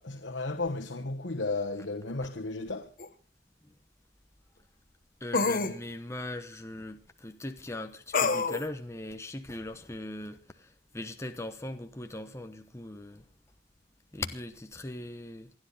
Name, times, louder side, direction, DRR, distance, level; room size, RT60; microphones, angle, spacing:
voice 1, 0.0-2.9, left 3 dB, 75° left, 1.4 m, -34 dB
sound 1, 3.0-3.1 5.3-5.8 8.1-8.7, left 4 dB, 50° left, 1.3 m, -26 dB
voice 2, 5.2-13.3 14.1-15.5, left 1 dB, 15° left, 1.0 m, -40 dB
28.5 x 10.5 x 4.1 m
head